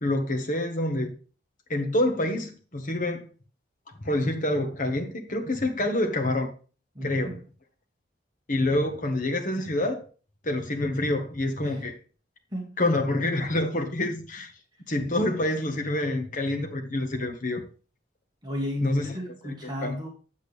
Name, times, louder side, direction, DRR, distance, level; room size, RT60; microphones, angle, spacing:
voice 1, 0.0-1.1 1.7-3.3 4.0-6.5 7.0-7.4 8.5-10.0 10.4-12.0 12.8-14.5 14.9-17.6 18.8-19.1 19.4-20.0, left 1 dB, 45° left, 1.6 m, -27 dB
voice 2, 6.9-7.4 11.6-11.8 12.5-12.8 18.4-20.1, left 1 dB, 25° right, 2.3 m, -33 dB
8.3 x 7.8 x 3.4 m
head